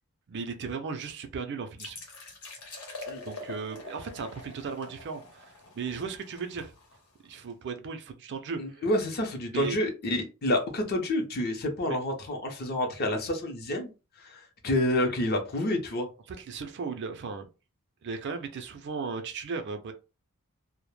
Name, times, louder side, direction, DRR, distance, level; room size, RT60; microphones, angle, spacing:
voice 1, 0.3-2.0 3.2-6.7 7.2-8.8 9.5-9.8 11.8-12.0 16.3-17.5 18.0-19.9, right 5 dB, 55° right, 0.4 m, -36 dB
sound 1, 1.8-7.3, left 2 dB, 85° left, 0.9 m, -44 dB
voice 2, 8.6-13.9 14.2-16.1, left 1 dB, 45° left, 0.6 m, -28 dB
2.1 x 2.0 x 3.0 m
head